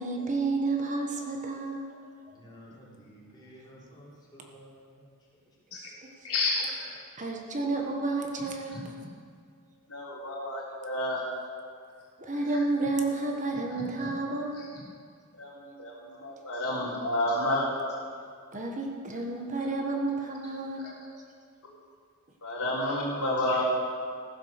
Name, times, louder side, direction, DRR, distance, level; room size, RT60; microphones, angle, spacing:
voice 1, 0.0-2.0 5.8-5.9 7.2-8.9 12.2-14.6 18.5-21.2, right 3 dB, 35° right, 1 dB, 1.3 m, -31 dB
voice 2, 2.3-5.1, equal, 20° left, -8 dB, 3.9 m, -52 dB
voice 3, 6.2-6.9 9.9-11.2 14.0-14.1 14.6-14.8 15.4-17.7 22.4-23.6, left 1 dB, 90° left, -6 dB, 3.7 m, -30 dB
15.0 x 7.4 x 6.6 m, 2.1 s
head